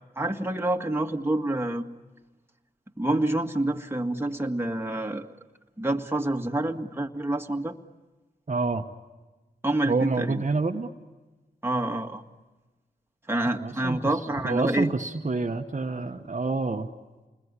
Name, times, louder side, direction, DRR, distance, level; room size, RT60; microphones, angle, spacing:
voice 1, 0.2-1.8 3.0-5.4 5.8-7.8 9.6-10.4 11.6-12.2 13.3-14.9, right 1 dB, 15° right, 3 dB, 1.9 m, -27 dB
voice 2, 8.5-8.8 9.8-10.9 13.5-14.1 14.4-16.9, right 3 dB, 45° right, 4 dB, 1.3 m, -28 dB
28.5 x 21.0 x 9.8 m, 1.2 s
cardioid pair, 50°, 18 cm